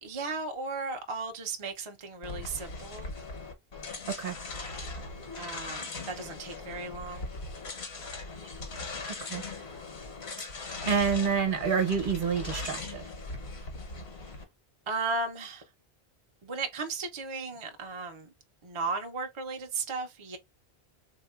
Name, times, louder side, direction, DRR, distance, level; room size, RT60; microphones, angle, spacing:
voice 1, 0.0-3.1 5.4-7.3 14.9-15.6 16.4-18.3 18.6-20.4, right 3 dB, 40° right, 0.5 m, -35 dB
sound 1, 2.2-14.4, left 3 dB, 80° left, 1.2 m, -40 dB
voice 2, 9.1-9.4 10.8-13.0, right 6 dB, 55° right, 1.0 m, -28 dB
3.5 x 2.8 x 2.3 m
omnidirectional pair, 1.1 m